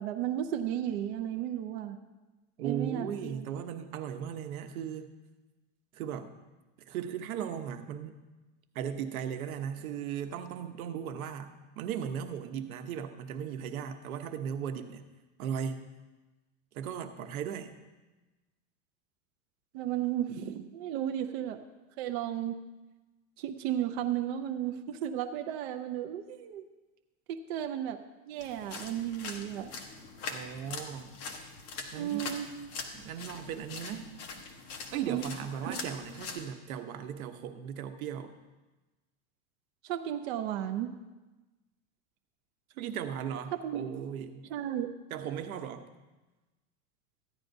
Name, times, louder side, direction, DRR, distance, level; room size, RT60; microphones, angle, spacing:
voice 1, 0.0-2.0 2.6-3.5 19.7-21.6 22.0-22.5 23.4-26.6 27.3-28.0 28.3-29.7 31.9-32.5 35.1-35.3 35.6-35.8 39.8-40.9 43.6-43.9 44.5-44.9, right 11 dB, 50° right, 6 dB, 0.6 m, -34 dB
voice 2, 2.6-5.1 5.9-6.3 6.9-8.2 8.7-15.0 15.4-15.8 16.7-17.7 30.3-31.1 31.9-32.3 32.9-34.1 34.9-38.3 42.7-44.4 45.1-45.8, right 8 dB, 85° right, 7 dB, 1.0 m, -37 dB
sound 1, 28.4-36.4, left 4 dB, 35° left, 1.0 m, -43 dB
14.5 x 10.5 x 2.6 m, 1.1 s
supercardioid pair, 160°, 42 cm